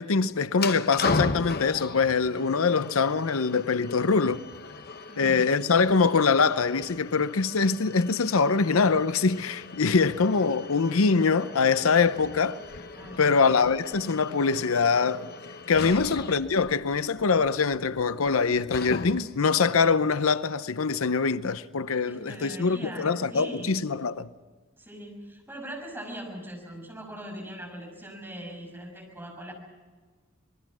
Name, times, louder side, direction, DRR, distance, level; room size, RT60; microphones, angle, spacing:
voice 1, 0.0-4.4 5.2-12.6 13.2-15.3 15.7-24.3, left 5 dB, 85° left, 0.7 m, -24 dB
sound 1, 0.5-19.4, left 3 dB, 50° left, 1.1 m, -37 dB
voice 2, 5.1-5.5 13.0-13.4 15.9-16.2 22.1-23.8 24.8-29.5, equal, 10° right, 6.1 m, -41 dB
26.5 x 20.5 x 6.2 m
head